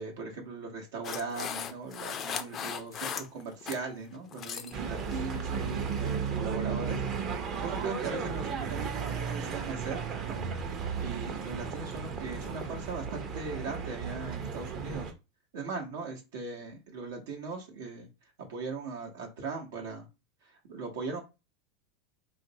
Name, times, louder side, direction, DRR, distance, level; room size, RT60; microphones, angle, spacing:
voice 1, 0.0-10.4 11.0-15.1 15.5-18.1 18.5-20.1 20.4-21.2, right 4 dB, 80° right, 0 dB, 0.9 m, -39 dB
sound 1, 1.0-3.8 4.2-4.8 5.1-5.4 5.9-6.1, left 8 dB, 35° left, 0.3 m, -38 dB
sound 2, 4.7-15.1, right 6 dB, 40° right, 0.6 m, -34 dB
3.1 x 2.5 x 2.7 m, 0.27 s
supercardioid pair, 130°, 0 cm